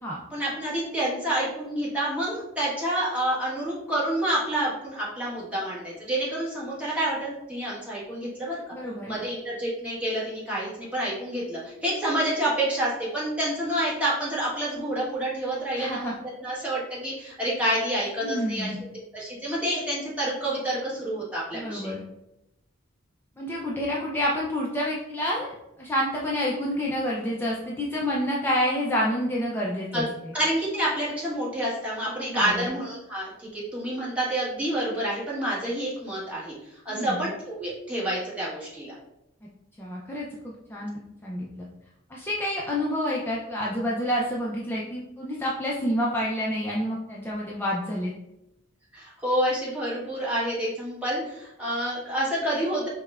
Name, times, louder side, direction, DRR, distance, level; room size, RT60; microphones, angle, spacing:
voice 1, 0.3-8.6 9.1-18.7 19.1-21.9 29.9-30.0 30.3-36.5 36.8-38.9 48.9-52.9, right 1 dB, 5° right, -8 dB, 1.2 m, -28 dB
voice 2, 8.7-9.2 15.8-16.2 18.2-18.8 21.5-22.0 23.4-30.3 32.1-32.6 36.9-37.2 39.8-41.7 42.1-48.1, equal, 10° left, -4 dB, 0.4 m, -29 dB
5.2 x 2.1 x 2.3 m, 0.86 s
head